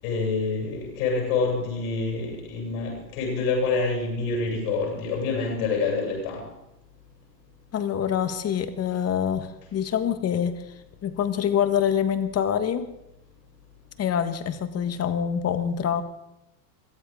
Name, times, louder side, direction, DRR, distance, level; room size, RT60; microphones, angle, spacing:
voice 1, 0.0-6.4, left 4 dB, 65° left, 8.0 m, -27 dB
voice 2, 7.7-10.6 11.0-12.9 14.0-16.0, left 8 dB, 30° left, 1.7 m, -25 dB
23.0 x 14.5 x 3.9 m
hypercardioid pair, 95°, 49 cm